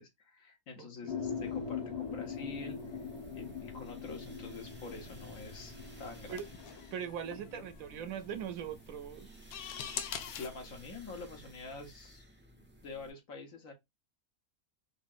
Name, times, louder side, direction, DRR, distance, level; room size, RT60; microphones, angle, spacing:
voice 1, 0.0-3.0 3.3-6.4 7.3-7.6 10.4-12.2 12.5-13.7, left 3 dB, 65° left, 1.5 m, -46 dB
voice 2, 0.8-1.1 6.3-6.5 6.9-9.3, right 8 dB, 75° right, 1.0 m, -41 dB
sound 1, 1.1-8.5, left 6 dB, 50° left, 1.2 m, -42 dB
sound 2, 1.2-13.1, right 1 dB, 15° right, 0.5 m, -55 dB
sound 3, 4.6-10.5, left 8 dB, 85° left, 1.2 m, -46 dB
5.0 x 2.7 x 2.4 m
omnidirectional pair, 1.5 m